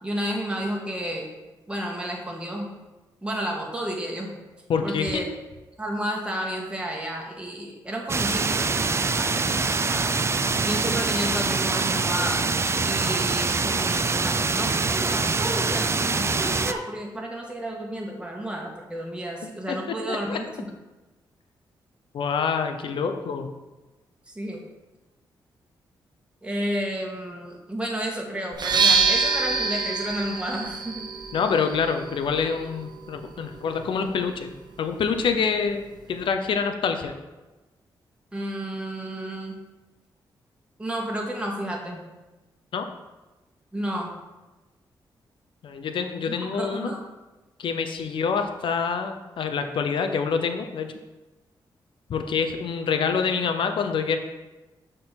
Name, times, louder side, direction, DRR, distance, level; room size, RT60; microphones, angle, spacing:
voice 1, 0.0-1.3 1.7-2.7 3.2-4.4 4.8-5.2 5.8-10.1 10.6-20.5 24.3-24.6 26.4-31.1 38.3-39.6 40.8-42.0 43.7-44.1 46.3-47.0, right 1 dB, 10° right, -1 dB, 1.7 m, -31 dB
voice 2, 4.7-5.2 19.7-19.8 20.1-20.4 22.1-23.5 31.3-34.5 34.8-37.1 42.7-42.9 45.6-46.9 47.6-50.9 52.1-54.2, left 6 dB, 75° left, 6 dB, 0.7 m, -26 dB
sound 1, 8.1-16.7, right 4 dB, 30° right, 0.4 m, -24 dB
sound 2, 28.5-36.3, right 4 dB, 55° right, 0.9 m, -28 dB
6.5 x 3.9 x 5.9 m, 1.1 s
cardioid pair, 70°, 9 cm